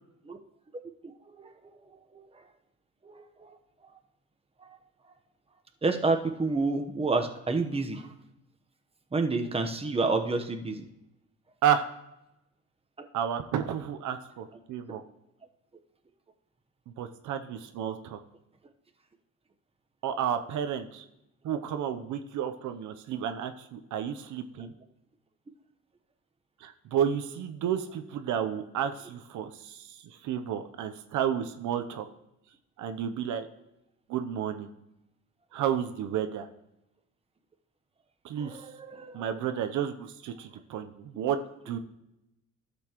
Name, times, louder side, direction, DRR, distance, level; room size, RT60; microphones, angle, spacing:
voice 1, 1.0-2.5 3.0-3.6 4.6-4.8 5.8-8.1 9.1-10.9 13.0-13.1 14.9-15.0 24.6-24.7 38.4-39.2, right 3 dB, 20° right, 5 dB, 1.0 m, -30 dB
voice 2, 13.1-15.0 17.0-18.2 20.0-21.0 21.4-24.7 26.6-32.1 32.8-33.5 34.1-34.7 35.5-36.5 38.2-38.6 39.1-41.8, right 9 dB, 80° right, 8 dB, 0.7 m, -31 dB
12.0 x 7.0 x 3.0 m, 0.89 s
cardioid pair, 90°, 30 cm